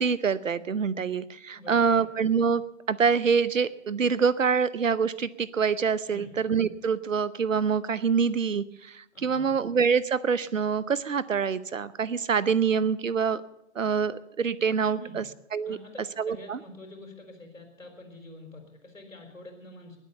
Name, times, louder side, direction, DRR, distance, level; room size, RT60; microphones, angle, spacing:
voice 1, 0.0-2.6 2.9-13.4 13.8-15.2 15.5-15.8 16.2-16.6, right 6 dB, 80° right, 19 dB, 0.8 m, -25 dB
voice 2, 1.5-2.1 6.1-6.3 9.1-9.6 14.9-15.2 15.6-20.0, left 2 dB, 80° left, 3 dB, 4.2 m, -46 dB
20.5 x 8.3 x 6.8 m, 0.82 s
figure-of-eight pair, 115°, 39 cm